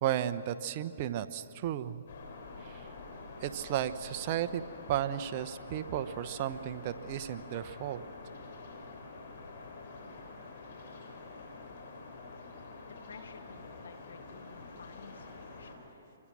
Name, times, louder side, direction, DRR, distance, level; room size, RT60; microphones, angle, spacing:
voice 1, 0.0-2.1 2.6-2.9 3.4-4.6 4.9-8.0, right 11 dB, 40° right, 11 dB, 1.0 m, -34 dB
sound 1, 2.1-15.8, left 3 dB, 60° left, 5.0 m, -47 dB
voice 2, 12.9-16.2, left 5 dB, 75° left, 7 dB, 2.1 m, -53 dB
29.0 x 24.0 x 6.3 m, 3.0 s
hypercardioid pair, 135°, 0 cm